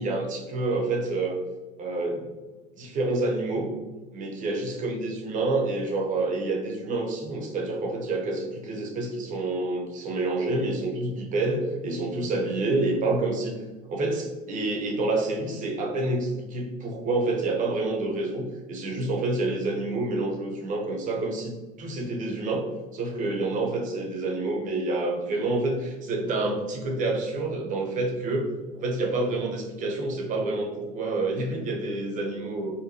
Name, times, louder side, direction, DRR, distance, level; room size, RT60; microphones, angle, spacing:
voice 1, 0.0-1.4 1.8-2.3 2.8-3.7 4.1-13.6 13.9-22.7 22.9-32.7, right 2 dB, 45° right, 1 dB, 0.9 m, -28 dB
4.1 x 2.2 x 2.8 m, 1.2 s
supercardioid pair, 95°, 19 cm